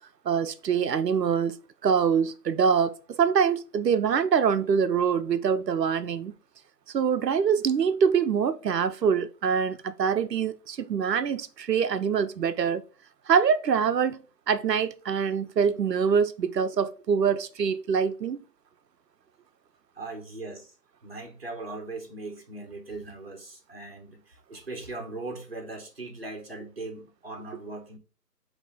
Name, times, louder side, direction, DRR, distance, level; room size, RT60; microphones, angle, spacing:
voice 1, 0.3-1.5 1.8-6.3 6.9-12.8 13.3-18.4, right 7 dB, 85° right, 0.6 m, -24 dB
voice 2, 19.9-20.7 21.0-28.0, right 2 dB, 40° right, 1.0 m, -39 dB
4.1 x 2.8 x 3.6 m
figure-of-eight pair, 165°, 48 cm